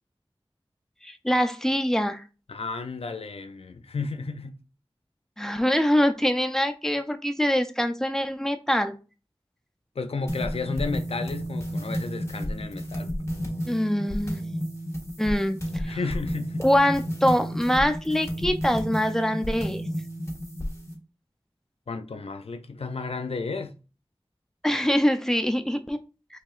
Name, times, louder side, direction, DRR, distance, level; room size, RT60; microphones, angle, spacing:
voice 1, 1.0-2.2 5.4-8.9 13.7-14.4 15.2-16.0 16.6-19.8 24.6-26.0, equal, 5° left, 0.5 m, -24 dB
voice 2, 2.5-4.6 10.0-13.1 15.8-16.7 21.9-23.7, left 4 dB, 80° left, 0.4 m, -33 dB
sound 1, 10.3-20.9, equal, 30° left, 1.5 m, -32 dB
4.6 x 3.3 x 2.4 m
wide cardioid pair, 45°, 10 cm